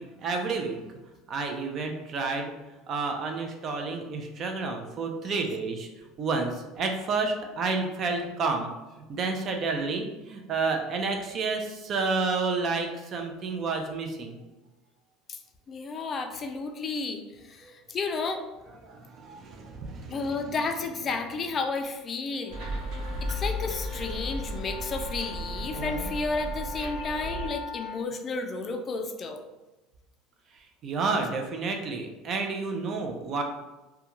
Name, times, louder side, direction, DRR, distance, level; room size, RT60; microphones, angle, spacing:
voice 1, 0.2-0.8 1.3-2.5 2.9-5.9 6.2-8.7 9.1-14.4 17.6-17.7 18.8-20.2 23.1-23.2 30.8-33.4, right 4 dB, 40° right, 3 dB, 0.4 m, -30 dB
voice 2, 15.7-18.4 20.1-22.6 23.3-29.4, left 4 dB, 30° left, 5 dB, 0.3 m, -32 dB
sound 1, 22.4-28.0, left 6 dB, 90° left, 0.5 m, -41 dB
sound 2, 22.5-27.5, equal, 65° right, 0.8 m, -34 dB
2.3 x 2.2 x 2.9 m, 1.1 s
supercardioid pair, 125°, 0 cm